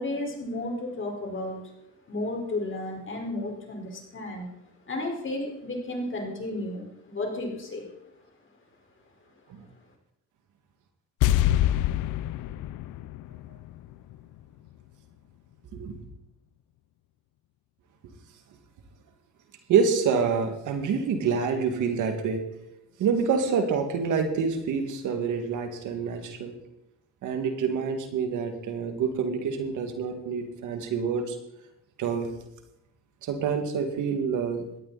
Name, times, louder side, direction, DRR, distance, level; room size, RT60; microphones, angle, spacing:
voice 1, 0.0-1.7 2.1-4.5 4.9-7.9, left 2 dB, 40° left, 1 dB, 4.9 m, -33 dB
sound 1, 11.2-14.4 14.7-14.8, left 13 dB, 90° left, 0.6 m, -26 dB
voice 2, 19.7-22.4 23.0-26.5 27.2-31.4 32.0-32.3 33.2-34.6, right 6 dB, 80° right, 6 dB, 2.3 m, -27 dB
17.5 x 13.0 x 4.2 m, 0.87 s
cardioid pair, 90°, 30 cm